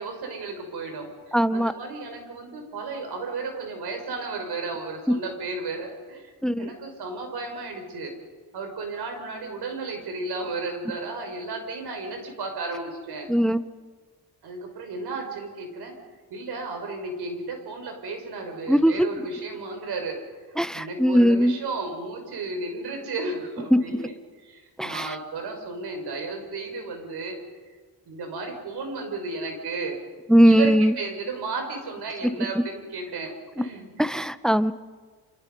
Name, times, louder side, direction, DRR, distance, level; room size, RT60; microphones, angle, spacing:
voice 1, 0.0-8.1 8.5-13.3 14.4-15.9 16.3-20.2 20.5-24.1 24.4-27.4 28.1-30.0 30.4-33.9, right 3 dB, 90° right, 4 dB, 5.8 m, -33 dB
voice 2, 1.3-1.7 6.4-6.7 13.3-13.6 18.7-19.1 20.6-21.5 23.7-23.8 24.8-25.1 30.3-30.9 34.0-34.7, equal, ahead, 14 dB, 0.9 m, -19 dB
29.0 x 27.5 x 5.4 m, 1.5 s
cardioid pair, 85°, 38 cm